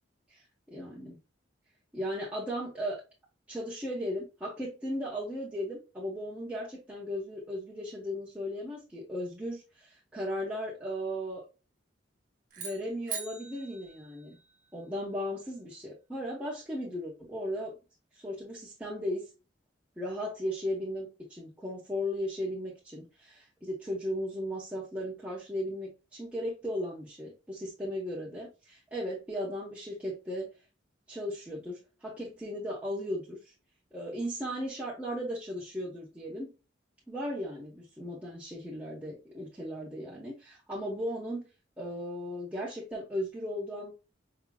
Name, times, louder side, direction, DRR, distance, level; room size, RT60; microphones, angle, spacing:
voice 1, 0.7-1.2 1.9-3.0 3.5-11.4 12.6-14.4 14.7-17.7 18.1-19.3 20.0-30.5 31.1-33.4 33.9-36.5 37.1-41.5 41.8-43.9, equal, 5° right, 1.0 m, -36 dB
sound 1, 12.5-14.8, right 6 dB, 45° right, 1.0 m, -42 dB
4.8 x 2.9 x 2.2 m
head